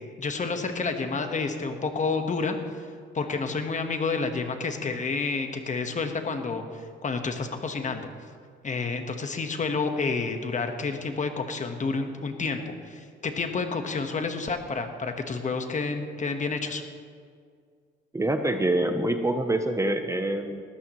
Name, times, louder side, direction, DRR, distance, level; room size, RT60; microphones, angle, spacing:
voice 1, 0.2-2.9 3.1-8.1 8.6-16.8, left 4 dB, 40° left, 6 dB, 1.4 m, -29 dB
voice 2, 18.1-20.6, right 1 dB, 15° right, 7 dB, 0.8 m, -25 dB
18.5 x 14.0 x 3.2 m, 2.1 s
cardioid pair, 90°, 20 cm